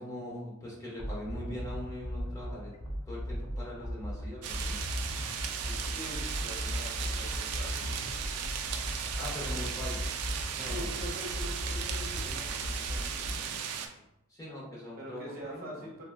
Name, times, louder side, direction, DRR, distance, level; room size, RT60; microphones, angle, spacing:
voice 1, 0.0-2.7 3.1-4.8 9.2-10.1 10.5-11.0 14.3-15.8, left 1 dB, 15° left, -5 dB, 0.7 m, -41 dB
sound 1, 1.0-13.3, equal, 70° left, 0.6 m, -37 dB
sound 2, 4.4-13.9, right 8 dB, 85° right, 0.3 m, -36 dB
voice 2, 5.7-8.3 10.6-13.5 14.9-16.0, equal, 45° right, -3 dB, 0.8 m, -44 dB
3.2 x 2.5 x 2.4 m, 0.88 s
head